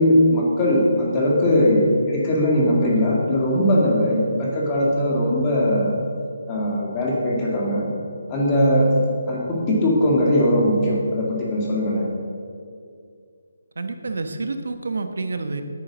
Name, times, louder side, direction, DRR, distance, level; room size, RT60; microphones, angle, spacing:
voice 1, 0.0-5.9 6.5-7.9 8.3-9.0 9.3-12.1, left 1 dB, 15° left, -3 dB, 2.2 m, -20 dB
voice 2, 13.8-15.6, right 3 dB, 75° right, 7 dB, 1.1 m, -28 dB
9.5 x 9.4 x 6.2 m, 2.2 s
hypercardioid pair, 170°, 0 cm